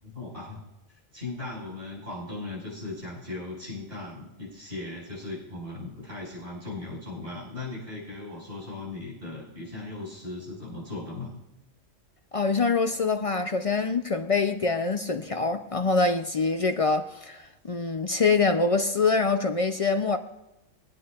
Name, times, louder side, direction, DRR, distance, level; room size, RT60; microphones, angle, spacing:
voice 1, 0.0-0.6 0.9-11.4, left 2 dB, 50° right, 5.2 m, -38 dB
voice 2, 12.3-20.2, left 4 dB, 50° left, 0.4 m, -25 dB
23.0 x 9.3 x 2.4 m
omnidirectional pair, 1.3 m